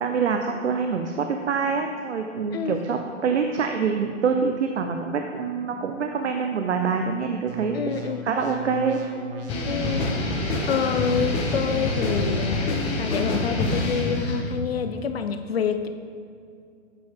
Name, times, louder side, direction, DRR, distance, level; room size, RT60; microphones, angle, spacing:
voice 1, 0.0-9.0, right 5 dB, 65° right, 5 dB, 0.7 m, -25 dB
sound 1, 7.5-12.5, right 1 dB, 45° right, 1.2 m, -37 dB
voice 2, 7.7-8.2 9.7-10.1 10.4-15.9, left 7 dB, 50° left, 8 dB, 0.5 m, -27 dB
sound 2, 9.5-14.5, left 2 dB, 15° left, 0.7 m, -26 dB
8.1 x 7.8 x 3.6 m, 2.3 s
figure-of-eight pair, 115°, 38 cm